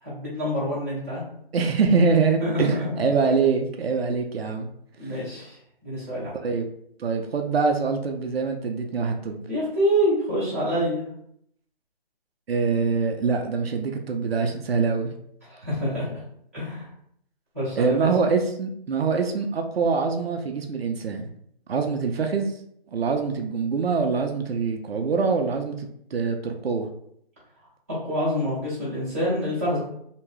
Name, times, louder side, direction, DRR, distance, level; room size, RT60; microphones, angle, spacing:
voice 1, 0.0-1.2 2.4-2.9 5.0-6.3 9.5-11.0 15.5-16.2 16.5-16.9 17.5-18.1 28.0-29.8, equal, 15° right, -12 dB, 0.8 m, -26 dB
voice 2, 1.5-4.7 5.0-5.1 6.3-6.7 7.0-9.4 12.5-15.1 17.8-21.3 21.7-22.5 22.9-26.9, right 5 dB, 80° right, 4 dB, 0.5 m, -24 dB
2.8 x 2.2 x 3.1 m, 0.70 s
hypercardioid pair, 180°, 30 cm